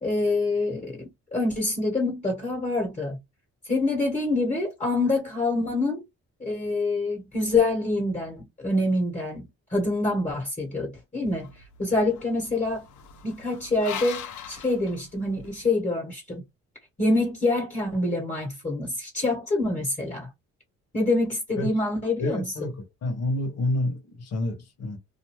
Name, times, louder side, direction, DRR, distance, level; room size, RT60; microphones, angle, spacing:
voice 1, 0.0-3.2 3.6-6.0 6.4-11.5 11.8-12.8 13.2-16.4 17.0-20.3 20.9-22.7, left 2 dB, 25° left, 1.4 m, -26 dB
sound 1, 11.2-15.6, left 8 dB, 75° left, 0.8 m, -41 dB
voice 2, 22.2-22.7 23.0-25.0, left 2 dB, 55° left, 1.2 m, -28 dB
2.6 x 2.2 x 3.1 m
cardioid pair, 90°, 30 cm